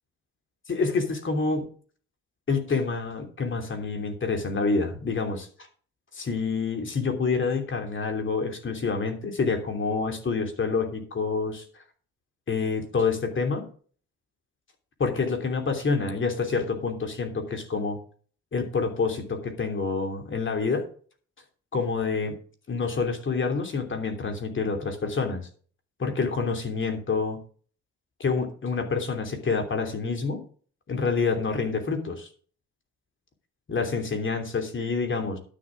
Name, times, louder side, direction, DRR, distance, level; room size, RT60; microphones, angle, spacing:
voice 1, 0.7-1.7 2.5-5.5 6.1-11.6 12.5-13.7 15.0-18.0 18.5-20.8 21.7-22.4 22.7-25.4 26.0-27.4 28.2-30.4 30.9-32.3 33.7-35.4, left 4 dB, 40° left, 5 dB, 3.0 m, -27 dB
12.0 x 7.4 x 5.0 m, 0.44 s
cardioid pair, 90°, 30 cm